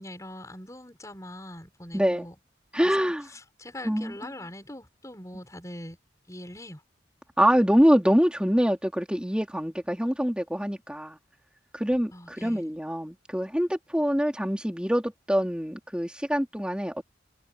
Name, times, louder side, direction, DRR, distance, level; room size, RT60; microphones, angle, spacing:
voice 1, 0.0-2.3 2.8-6.0 6.3-6.8 12.1-12.7, left 1 dB, 15° left, 6.8 m, -42 dB
voice 2, 1.9-2.3 2.7-3.2 3.8-4.1 7.4-11.2 11.7-17.0, equal, 5° right, 3.4 m, -25 dB
head